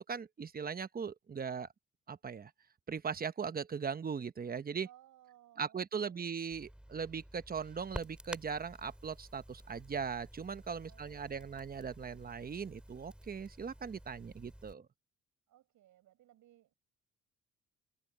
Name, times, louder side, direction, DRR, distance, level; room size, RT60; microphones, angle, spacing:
voice 1, 0.0-1.7 2.1-2.5 2.9-4.9 5.6-14.9, right 6 dB, 30° right, 1.0 m, -39 dB
voice 2, 4.8-6.3 10.8-11.7 15.5-16.7, right 13 dB, 80° right, 6.2 m, -63 dB
Crackle, 6.5-14.7, equal, 5° right, 5.7 m, -51 dB
cardioid pair, 90°, 30 cm